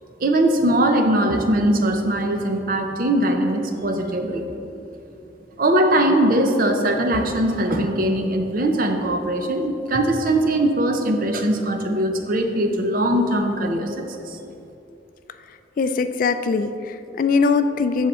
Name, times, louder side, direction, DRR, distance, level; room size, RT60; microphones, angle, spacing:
voice 1, 0.2-4.4 5.6-14.4, right 1 dB, 50° right, 5 dB, 0.7 m, -21 dB
voice 2, 15.8-18.1, left 4 dB, 45° left, 10 dB, 0.3 m, -21 dB
7.8 x 6.6 x 4.3 m, 2.8 s
head